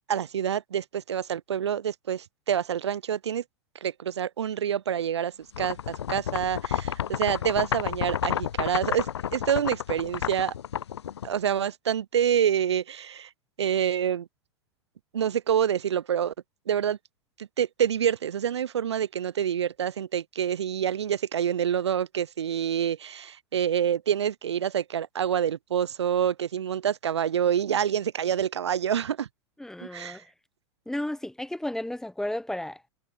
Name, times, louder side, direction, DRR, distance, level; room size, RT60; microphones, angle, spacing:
voice 1, 0.1-3.4 3.8-10.5 11.2-13.3 13.6-14.3 15.1-16.3 16.7-17.0 17.4-29.3 29.9-30.2, right 9 dB, 80° right, 0.4 m, -27 dB
sound 1, 5.5-11.7, left 9 dB, 80° left, 0.5 m, -31 dB
voice 2, 29.6-30.3 30.9-32.9, left 1 dB, 5° left, 0.8 m, -33 dB
figure-of-eight pair, 95°, 14 cm